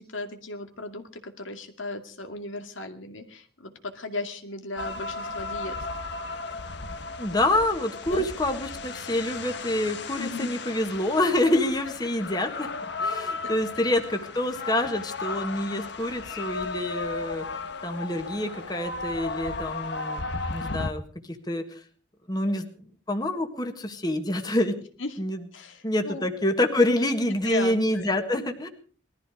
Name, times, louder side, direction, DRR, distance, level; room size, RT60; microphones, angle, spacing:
voice 1, 0.0-5.9 8.1-8.3 10.2-10.5 13.4-13.5 25.0-25.2 25.5-26.3 26.9-28.1 28.4-28.5, left 2 dB, 85° left, 5 dB, 2.3 m, -36 dB
sound 1, 4.8-20.9, left 3 dB, 60° left, 1.4 m, -35 dB
voice 2, 7.2-12.7 13.0-17.4 17.8-20.3 20.5-21.0 21.5-21.8 22.3-22.7 23.1-24.8 25.2-25.4 25.8-28.7, left 1 dB, 20° left, 5 dB, 1.7 m, -27 dB
20.5 x 14.0 x 4.9 m, 0.42 s
head